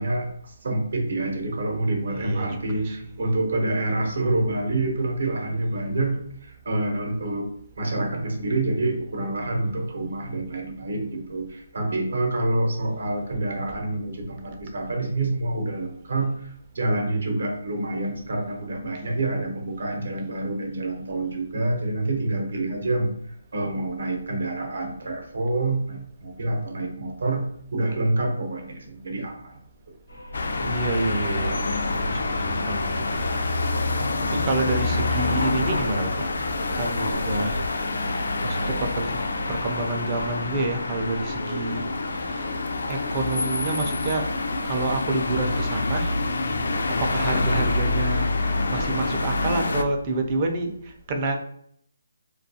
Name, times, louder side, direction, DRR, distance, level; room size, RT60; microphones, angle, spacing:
voice 1, 0.0-7.5 7.8-23.1 23.5-27.4 27.7-29.6, right 2 dB, 70° right, 2 dB, 0.7 m, -27 dB
voice 2, 2.2-3.1 30.6-31.7 31.9-33.6 34.3-36.4 36.8-37.7 37.9-39.2 39.5-41.8 42.2-42.5 42.9-44.2 44.6-46.2 47.0-48.3 48.7-51.4, right 2 dB, 30° right, 4 dB, 0.4 m, -28 dB
sound 1, 30.1-46.0, equal, 90° left, 0.9 m, -42 dB
sound 2, 30.3-49.8, left 2 dB, 70° left, 0.3 m, -26 dB
2.3 x 2.2 x 2.7 m, 0.67 s
hypercardioid pair, 160°, 0 cm